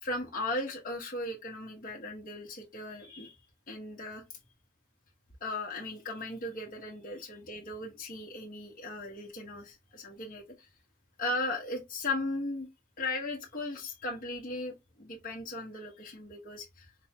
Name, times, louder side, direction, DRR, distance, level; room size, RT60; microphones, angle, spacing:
voice 1, 0.0-3.4 3.7-4.2 5.4-10.7 11.2-12.7 13.0-16.9, left 2 dB, 45° left, 1.1 m, -37 dB
5.2 x 2.2 x 2.8 m
head